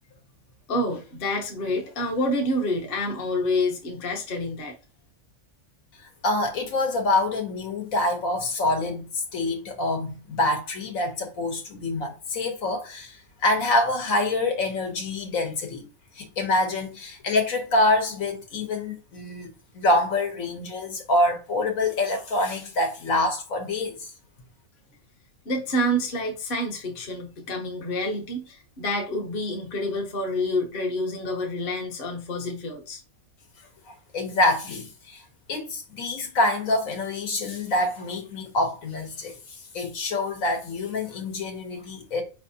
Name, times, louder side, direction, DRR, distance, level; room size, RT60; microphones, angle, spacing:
voice 1, 0.7-4.7 25.4-33.0, left 1 dB, 45° left, 1.0 m, -28 dB
voice 2, 6.2-15.9 16.1-19.5 19.7-24.1 33.9-35.2 35.5-42.2, left 2 dB, 75° left, 1.5 m, -26 dB
4.6 x 3.3 x 2.7 m
omnidirectional pair, 1.4 m